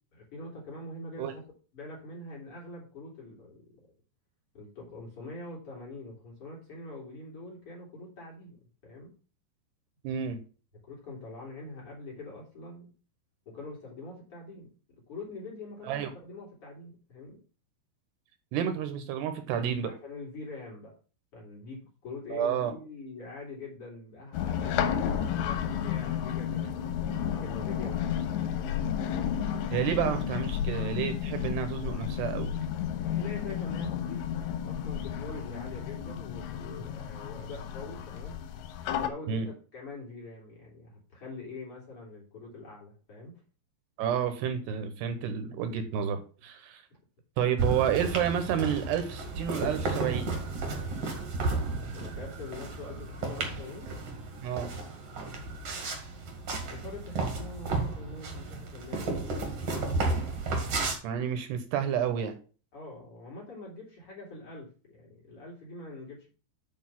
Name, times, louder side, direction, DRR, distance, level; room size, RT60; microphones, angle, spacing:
voice 1, 0.1-1.4 1.7-3.6 4.5-8.6 8.8-9.1 10.9-12.9 13.5-14.7 15.1-17.4 19.9-20.9 21.3-26.8 27.3-28.7 33.1-34.2 34.6-38.4 39.0-43.3 51.9-53.9 56.7-59.6 62.7-66.3, left 2 dB, 35° left, -3 dB, 3.5 m, -44 dB
voice 2, 10.0-10.4 15.8-16.1 18.5-19.9 22.3-22.7 29.7-32.5 39.3-39.5 44.0-46.8 47.4-50.3 54.4-54.7 61.0-62.4, right 8 dB, 75° right, 8 dB, 2.9 m, -30 dB
sound 1, 24.3-39.1, left 9 dB, 90° left, 3.0 m, -32 dB
sound 2, 47.6-61.0, right 3 dB, 45° right, 2.4 m, -33 dB
7.6 x 5.3 x 5.8 m, 0.36 s
omnidirectional pair, 5.0 m